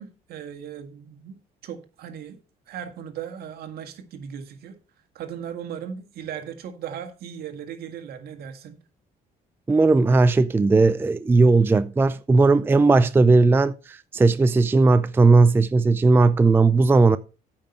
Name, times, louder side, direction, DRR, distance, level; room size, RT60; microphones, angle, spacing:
voice 1, 0.0-1.4 1.6-2.4 2.7-4.8 5.2-8.8, right 8 dB, 65° right, 1.8 m, -37 dB
voice 2, 9.7-17.2, right 3 dB, 15° right, 0.4 m, -17 dB
8.9 x 5.6 x 5.5 m
cardioid pair, 110°, 17 cm